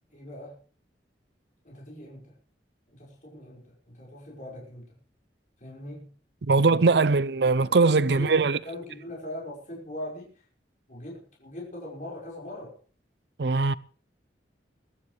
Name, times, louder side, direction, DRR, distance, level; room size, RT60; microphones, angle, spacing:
voice 1, 0.1-0.6 1.6-2.4 2.9-5.0 5.6-6.1 6.5-7.1 7.6-10.4 10.9-12.8, left 1 dB, 45° left, 5.4 m, -41 dB
voice 2, 6.4-8.6 13.4-13.7, right 4 dB, 65° right, 0.6 m, -21 dB
22.0 x 12.0 x 3.4 m
head